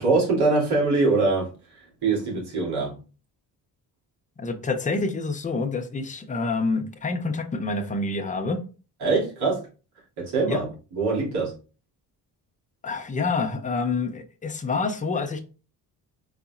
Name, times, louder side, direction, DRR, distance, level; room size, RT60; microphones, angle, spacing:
voice 1, 0.0-1.5 1.7-3.0 9.0-9.6 10.2-10.7 10.9-11.5, right 3 dB, 85° right, 2.6 m, -23 dB
voice 2, 4.4-8.6 10.5-10.6 12.8-15.4, left 3 dB, 20° left, 0.6 m, -27 dB
4.9 x 4.0 x 2.4 m
cardioid pair, 145°, 39 cm